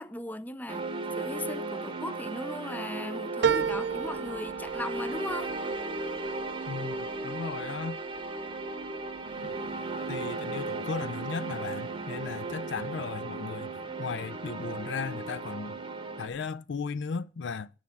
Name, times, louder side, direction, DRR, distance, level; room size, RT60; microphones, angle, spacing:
voice 1, 0.0-5.5, left 1 dB, 10° left, 0.4 m, -38 dB
sound 1, 0.7-16.3, right 3 dB, 25° right, 0.8 m, -36 dB
sound 2, 3.4-8.2 8.7-9.4 9.7-9.8, right 7 dB, 65° right, 0.5 m, -33 dB
voice 2, 6.7-8.0 9.4-9.5 10.1-13.7 14.0-15.8 16.2-17.7, left 5 dB, 75° left, 0.4 m, -36 dB
sound 3, 9.2-16.5, right 2 dB, 85° right, 1.0 m, -52 dB
9.8 x 5.9 x 6.9 m
head